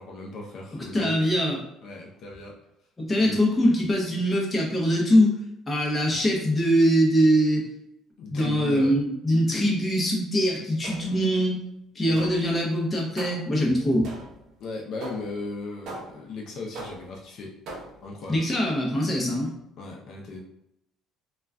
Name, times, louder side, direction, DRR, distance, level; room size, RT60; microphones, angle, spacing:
voice 1, 0.0-1.3 1.8-2.6 3.2-3.4 8.2-8.9 12.0-12.2 14.6-17.5 18.0-18.5 19.8-20.4, left 3 dB, 55° left, -1 dB, 0.5 m, -37 dB
voice 2, 0.7-1.6 3.0-5.4 5.7-7.7 8.3-11.6 11.9-14.1 18.3-19.5, equal, 15° left, -2 dB, 0.6 m, -23 dB
sound 1, 10.8-11.3 12.2-12.6 13.2-13.6 14.0-14.5 15.0-15.4 15.9-16.3 16.7-17.2 17.7-18.1, right 2 dB, 60° right, 0.6 m, -40 dB
2.3 x 2.2 x 3.5 m, 0.82 s
cardioid pair, 145°, 0 cm